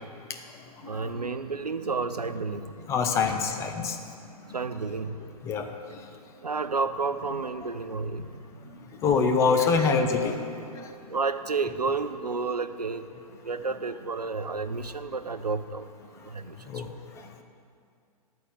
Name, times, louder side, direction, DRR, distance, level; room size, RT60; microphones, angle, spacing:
voice 1, 0.8-2.9 4.4-5.2 6.4-8.7 9.8-9.9 11.1-13.1 13.4-15.8 16.2-16.6, right 4 dB, 85° right, 10 dB, 0.5 m, -31 dB
voice 2, 2.9-4.0 5.4-5.7 9.0-10.9 16.7-16.9, left 5 dB, 15° left, 4 dB, 0.5 m, -25 dB
11.5 x 4.3 x 8.1 m, 2.3 s
figure-of-eight pair, 115°, 20 cm